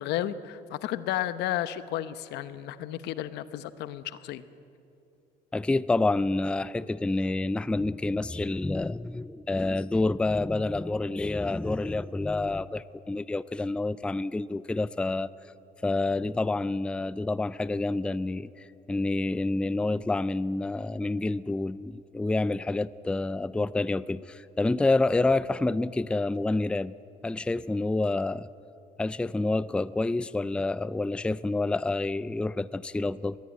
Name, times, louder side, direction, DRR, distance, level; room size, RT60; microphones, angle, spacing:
voice 1, 0.0-4.4, left 12 dB, 85° left, 13 dB, 0.9 m, -32 dB
voice 2, 5.5-15.3 15.8-18.5 18.9-26.9 27.2-28.5 29.0-33.4, left 2 dB, 5° left, 17 dB, 0.4 m, -28 dB
21.5 x 14.0 x 9.4 m, 2.8 s
cardioid pair, 110°, 17 cm